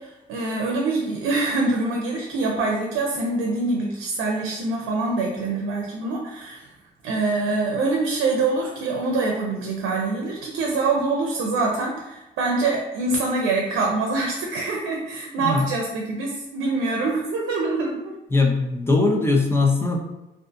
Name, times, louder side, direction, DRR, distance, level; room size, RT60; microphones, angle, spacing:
voice 1, 0.0-6.7 7.0-18.1, right 3 dB, 85° right, -1 dB, 0.5 m, -25 dB
voice 2, 18.3-20.0, left 3 dB, 10° left, 1 dB, 0.4 m, -20 dB
2.5 x 2.4 x 2.5 m, 0.95 s
cardioid pair, 90°, 20 cm